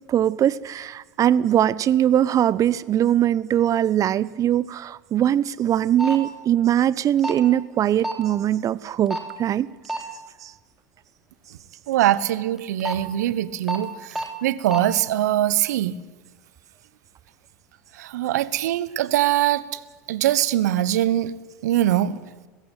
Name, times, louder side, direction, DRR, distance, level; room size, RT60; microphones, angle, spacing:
voice 1, 0.1-9.7 10.4-10.5, right 11 dB, 35° right, 19 dB, 0.9 m, -21 dB
sound 1, 6.0-6.2 7.2-7.4 8.0-8.2 9.1-9.3 9.8-10.0 12.6-12.9 13.7-13.8 14.1-14.3 14.7-14.8, right 1 dB, 5° right, 3.4 m, -27 dB
voice 2, 11.9-16.0 18.0-19.8 20.1-21.3 21.6-22.2, right 13 dB, 70° right, 16 dB, 1.2 m, -22 dB
19.5 x 15.5 x 9.2 m, 1.3 s
hypercardioid pair, 85°, 9 cm